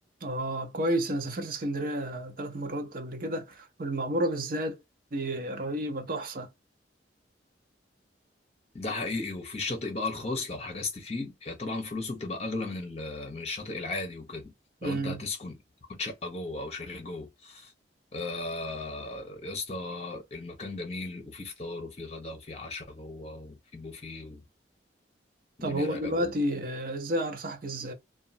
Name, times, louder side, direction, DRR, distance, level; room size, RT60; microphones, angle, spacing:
voice 1, 0.2-4.8 5.1-6.5 14.8-15.2 25.6-27.9, right 1 dB, 50° right, 0.6 m, -31 dB
voice 2, 8.7-14.5 14.8-15.6 15.9-17.7 18.1-24.4 25.6-26.3, left 2 dB, 35° left, 0.9 m, -36 dB
2.8 x 2.4 x 2.6 m
head